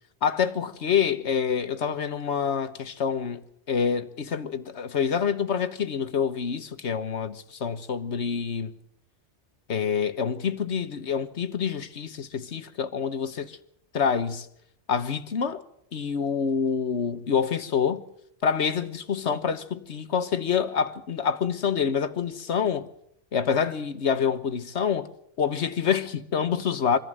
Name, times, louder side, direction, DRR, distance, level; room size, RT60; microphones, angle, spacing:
voice 1, 0.2-7.4 7.6-8.7 9.7-13.6 13.9-14.5 14.9-15.6 15.9-18.0 18.4-22.9 23.3-25.1 25.4-27.0, left 7 dB, 80° left, 1.5 m, -27 dB
24.5 x 14.5 x 7.7 m
omnidirectional pair, 1.1 m